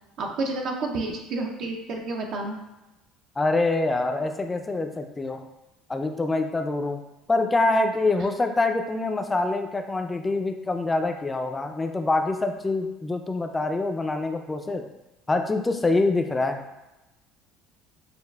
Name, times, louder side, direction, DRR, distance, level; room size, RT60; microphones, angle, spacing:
voice 1, 0.2-2.6, right 2 dB, 60° right, 1 dB, 0.5 m, -30 dB
voice 2, 3.4-5.4 5.9-7.0 7.3-14.9 15.3-16.6, left 2 dB, 20° left, 6 dB, 0.4 m, -25 dB
6.6 x 2.4 x 2.3 m, 0.99 s
supercardioid pair, 95°, 0 cm